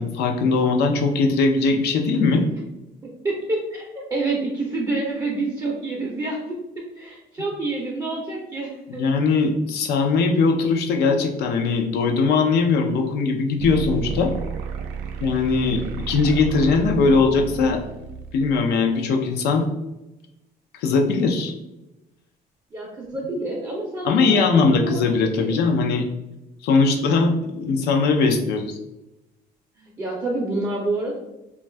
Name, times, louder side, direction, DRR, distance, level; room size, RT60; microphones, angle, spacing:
voice 1, 0.0-2.5 9.0-14.3 15.2-15.8 16.1-17.8 18.3-19.7 20.7-21.5 24.0-26.0 26.6-28.8, left 4 dB, 75° left, 4 dB, 0.5 m, -20 dB
voice 2, 3.0-9.0 15.6-15.9 22.7-25.5 29.8-31.2, right 2 dB, 20° right, -2 dB, 0.5 m, -28 dB
sound 1, 13.6-18.6, right 6 dB, 85° right, 0.4 m, -31 dB
2.5 x 2.3 x 3.2 m, 0.95 s
cardioid pair, 110°, 17 cm